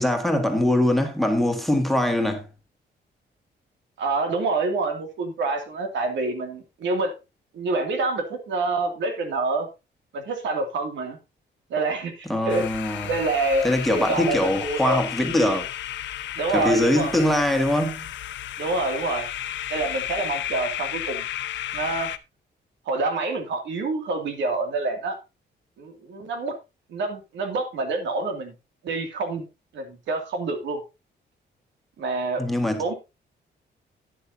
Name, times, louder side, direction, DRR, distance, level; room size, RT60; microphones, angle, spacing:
voice 1, 0.0-2.4 12.3-13.1 13.6-15.6 16.5-18.1 32.4-32.8, left 1 dB, ahead, 1.7 m, -22 dB
voice 2, 4.0-7.1 7.5-9.7 10.1-11.2 11.7-12.7 13.0-15.0 16.4-17.2 18.6-19.3 19.7-21.2 21.7-22.1 22.9-25.2 25.8-26.5 26.9-28.5 28.8-29.5 29.7-30.8 32.0-32.4 32.7-32.9, right 3 dB, 90° right, 2.3 m, -27 dB
sound 1, 12.5-22.2, left 11 dB, 85° left, 0.7 m, -33 dB
11.5 x 9.9 x 2.7 m
cardioid pair, 155°, 19 cm